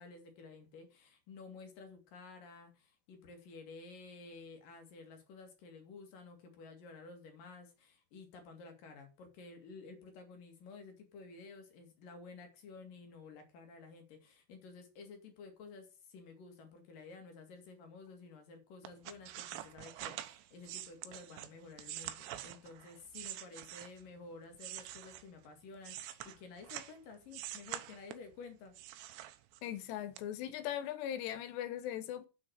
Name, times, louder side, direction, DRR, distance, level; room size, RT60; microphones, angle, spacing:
voice 1, 0.0-28.7, left 4 dB, 55° left, 3.4 m, -52 dB
sound 1, 18.8-24.1 24.5-27.0 27.3-28.3 28.7-29.8 30.2-30.3, right 13 dB, 90° right, 3.0 m, -46 dB
voice 2, 29.6-32.3, left 11 dB, 80° left, 3.2 m, -39 dB
7.9 x 6.3 x 7.4 m
omnidirectional pair, 5.0 m